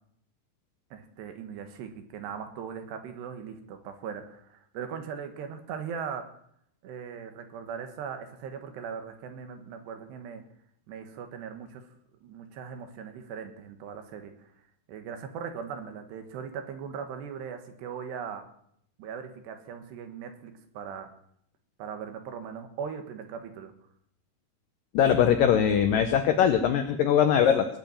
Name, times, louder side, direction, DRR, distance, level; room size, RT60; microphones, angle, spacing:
voice 1, 0.9-6.2 6.8-10.4 10.9-11.8 12.2-14.3 14.9-18.4 19.0-21.1 21.8-23.7, right 7 dB, 75° right, 7 dB, 3.6 m, -39 dB
voice 2, 24.9-27.7, left 8 dB, 80° left, 7 dB, 2.0 m, -21 dB
20.0 x 6.9 x 8.8 m, 0.69 s
omnidirectional pair, 5.1 m